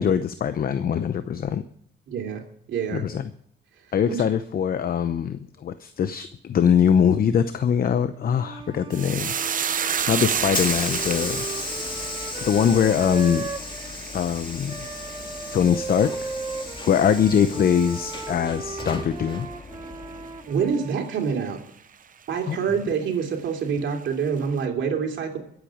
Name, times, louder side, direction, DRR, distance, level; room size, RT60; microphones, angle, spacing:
voice 1, 0.0-1.6 2.9-3.3 3.9-9.3 10.1-11.5 12.4-13.5 14.1-14.9 15.5-16.3 16.9-19.5 22.5-22.6, left 8 dB, 50° left, 12 dB, 0.7 m, -22 dB
voice 2, 2.1-2.4 2.7-3.1 4.1-4.2 20.5-21.6 22.3-25.4, right 6 dB, 70° right, 2 dB, 3.1 m, -26 dB
Wind instrument woodwind instrument, 8.2-14.0 14.7-21.2, right 4 dB, 20° right, 1.5 m, -37 dB
sound 1, 8.9-17.5 17.8-18.5 18.8-19.0, right 7 dB, 45° right, 0.8 m, -31 dB
Hiss / Sliding door, 9.8-20.7, left 3 dB, 25° left, 2.0 m, -35 dB
22.0 x 8.3 x 5.0 m, 0.68 s
cardioid pair, 90°, 20 cm